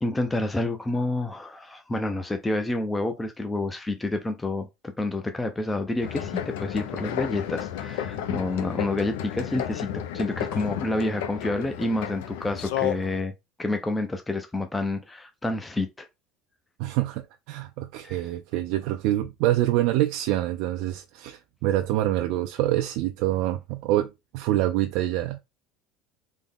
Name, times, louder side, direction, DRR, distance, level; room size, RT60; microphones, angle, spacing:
voice 1, 0.0-13.3 13.6-16.1 18.0-18.2, left 2 dB, 10° left, 0.4 m, -29 dB
sound 1, 6.0-13.2, left 10 dB, 85° left, 0.4 m, -32 dB
voice 2, 16.8-25.4, right 14 dB, 70° right, 0.3 m, -26 dB
3.5 x 2.0 x 3.6 m
supercardioid pair, 130°, 0 cm